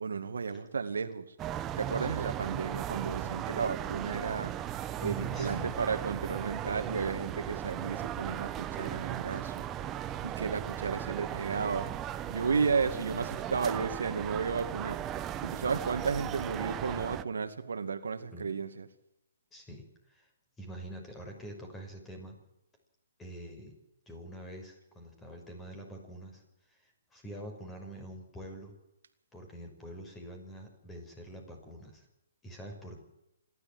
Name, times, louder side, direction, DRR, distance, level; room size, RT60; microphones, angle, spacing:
voice 1, 0.0-1.4 1.8-4.5 5.0-9.7 10.2-11.9 12.2-15.0 15.4-18.9, right 5 dB, 85° right, 2.2 m, -33 dB
sound 1, 1.4-17.2, right 11 dB, 20° right, 1.0 m, -37 dB
voice 2, 5.0-5.8 18.3-18.5 19.5-20.3 20.6-22.4 23.2-23.8 24.1-26.4 26.7-28.7 29.3-32.1 32.4-33.0, right 1 dB, 10° left, 5.9 m, -45 dB
27.0 x 12.5 x 7.7 m
hypercardioid pair, 150°, 0 cm